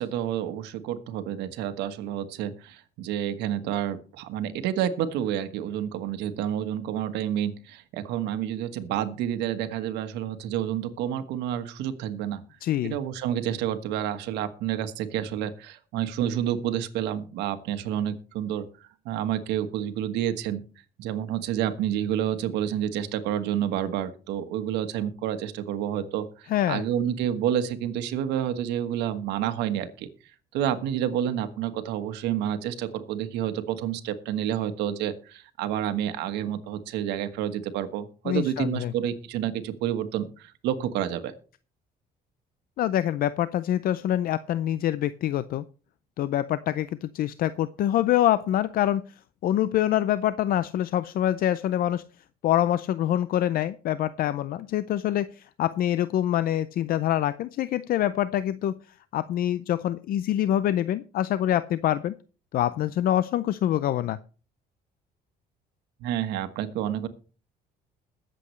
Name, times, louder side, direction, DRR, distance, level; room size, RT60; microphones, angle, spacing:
voice 1, 0.0-12.4 12.8-18.6 19.0-20.6 21.0-30.1 30.5-41.3 66.0-67.1, right 10 dB, 90° right, 9 dB, 1.4 m, -29 dB
voice 2, 12.6-13.0 26.5-26.8 38.3-38.9 42.8-45.6 46.2-49.0 49.4-52.0 52.4-58.8 59.1-62.1 62.5-64.2, left 12 dB, 60° left, 15 dB, 0.5 m, -25 dB
21.5 x 7.7 x 3.2 m, 0.37 s
cardioid pair, 110°, 17 cm